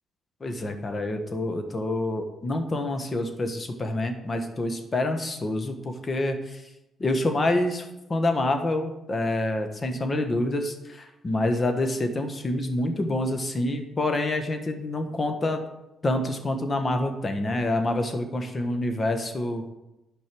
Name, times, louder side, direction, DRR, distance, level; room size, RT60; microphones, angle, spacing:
voice 1, 0.4-6.6 7.0-15.6 16.0-19.7, left 1 dB, 30° left, 6 dB, 1.4 m, -27 dB
11.0 x 5.4 x 6.1 m, 0.95 s
cardioid pair, 90°, 0 cm